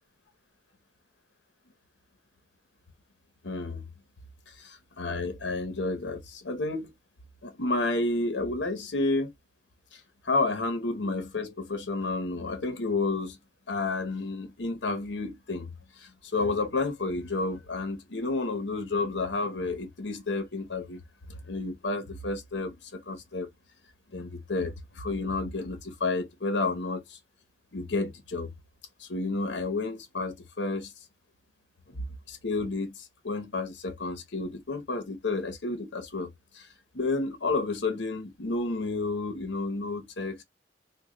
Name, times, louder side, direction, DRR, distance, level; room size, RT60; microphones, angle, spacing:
voice 1, 3.4-3.8 4.5-6.9 7.4-9.3 9.9-13.4 13.7-15.7 16.0-21.0 21.3-23.5 24.1-27.2 27.7-28.5 29.0-30.9 31.9-36.7 36.9-40.4, left 3 dB, 75° left, 1.0 m, -31 dB
3.1 x 2.3 x 3.7 m
head